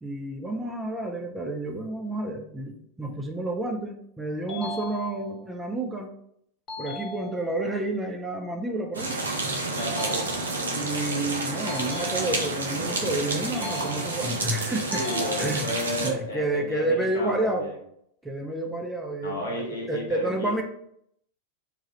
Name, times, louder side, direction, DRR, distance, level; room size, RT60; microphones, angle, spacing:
voice 1, 0.0-6.1 6.8-9.1 10.7-15.0 15.4-15.7 16.0-17.6 18.2-20.6, right 2 dB, 10° right, 2 dB, 0.4 m, -30 dB
sound 1, 4.5-5.5 6.7-7.7 9.8-10.8 11.7-12.7 13.5-14.5 14.9-15.9, left 2 dB, 30° left, 1.0 m, -39 dB
sound 2, 8.9-16.1, right 2 dB, 70° right, 0.5 m, -29 dB
voice 2, 9.8-10.3 14.9-17.7 19.2-20.6, left 1 dB, 65° left, -1 dB, 0.9 m, -33 dB
3.0 x 2.3 x 2.8 m, 0.71 s
figure-of-eight pair, 90°, 0 cm